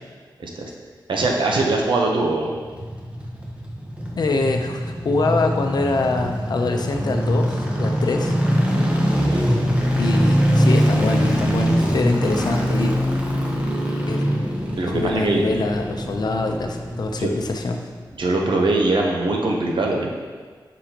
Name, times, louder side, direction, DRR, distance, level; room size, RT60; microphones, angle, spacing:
voice 1, 0.4-0.7 1.1-2.6 9.3-9.4 14.8-15.4 17.2-17.3 18.2-20.1, right 2 dB, 75° right, 0 dB, 0.9 m, -21 dB
sound 1, 2.5-17.7 17.9-18.0, equal, 15° right, 1.1 m, -22 dB
voice 2, 4.2-8.3 9.9-12.9 14.1-14.3 14.9-17.8, left 3 dB, 55° left, 3 dB, 0.7 m, -24 dB
6.7 x 6.1 x 3.0 m, 1.5 s
wide cardioid pair, 90°, 8 cm